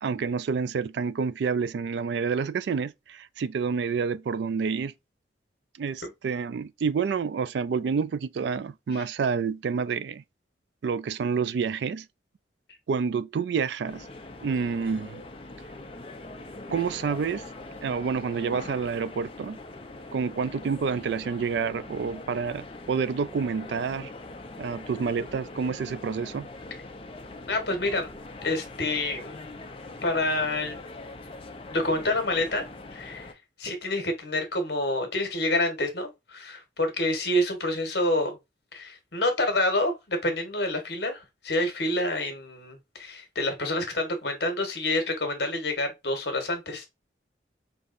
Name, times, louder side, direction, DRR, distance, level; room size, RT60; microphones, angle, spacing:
voice 1, 0.0-4.9 5.8-10.2 10.8-12.1 12.9-14.1 14.4-15.2 16.7-17.4 17.8-19.6 20.1-24.1 24.6-26.5, right 5 dB, 65° right, 0.3 m, -28 dB
sound 1, 13.9-33.3, left 2 dB, 30° left, 0.6 m, -42 dB
voice 2, 27.5-28.1 28.4-29.5 30.0-30.8 31.7-32.6 32.9-33.3 33.6-38.4 38.7-46.9, left 1 dB, 60° left, 1.3 m, -28 dB
5.1 x 2.9 x 2.5 m
head